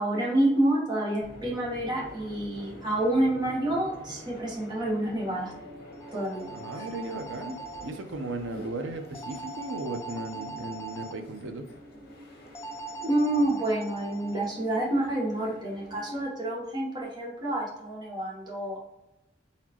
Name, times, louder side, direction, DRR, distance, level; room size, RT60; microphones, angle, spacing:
voice 1, 0.0-5.5 6.1-6.5 6.7-6.9 13.0-18.8, right 1 dB, 25° right, -4 dB, 1.3 m, -28 dB
sound 1, 1.2-16.2, equal, 50° left, 1.4 m, -47 dB
sound 2, 5.9-7.9 9.1-11.1 12.6-14.5, right 3 dB, 15° left, 0.4 m, -41 dB
voice 2, 6.5-11.7, right 2 dB, 75° right, 6 dB, 0.7 m, -36 dB
4.1 x 4.1 x 3.0 m, 0.92 s
head